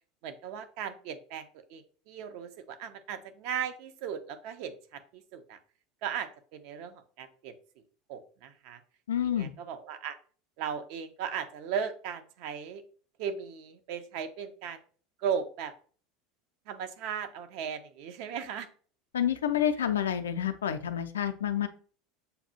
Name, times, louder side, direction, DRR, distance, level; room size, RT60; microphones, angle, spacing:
voice 1, 0.2-5.6 6.0-7.5 8.1-8.8 9.4-10.2 10.6-12.8 13.2-14.8 15.2-15.7 16.7-18.7, right 7 dB, 50° right, 9 dB, 0.4 m, -37 dB
voice 2, 9.1-9.5 19.1-21.7, left 9 dB, 70° left, 10 dB, 0.3 m, -28 dB
6.7 x 2.3 x 2.7 m, 0.43 s
figure-of-eight pair, 75°, 0 cm